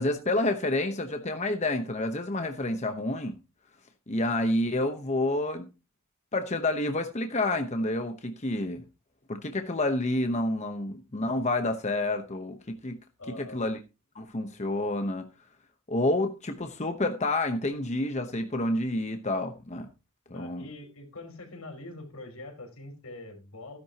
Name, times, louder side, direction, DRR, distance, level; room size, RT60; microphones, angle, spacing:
voice 1, 0.0-3.4 4.1-5.7 6.3-8.8 9.3-13.0 13.5-13.8 14.1-15.3 15.9-19.9 20.3-20.6, left 2 dB, 30° left, 1.0 m, -29 dB
voice 2, 13.2-13.6 20.3-23.8, left 2 dB, 85° left, 4.8 m, -44 dB
16.0 x 10.5 x 2.9 m
head